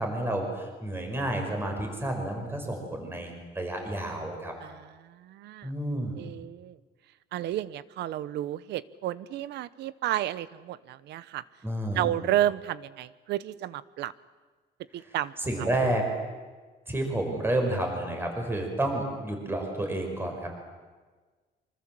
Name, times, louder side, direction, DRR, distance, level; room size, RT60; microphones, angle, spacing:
voice 1, 0.0-4.5 5.6-6.2 11.6-12.1 15.4-16.1 16.9-20.5, right 1 dB, 15° right, 3 dB, 5.2 m, -30 dB
voice 2, 4.6-5.7 6.2-6.8 7.3-11.4 11.9-14.1 14.9-15.3 15.6-15.7, right 13 dB, 75° right, 17 dB, 1.0 m, -31 dB
25.5 x 25.5 x 7.7 m, 1.4 s
cardioid pair, 165°, 18 cm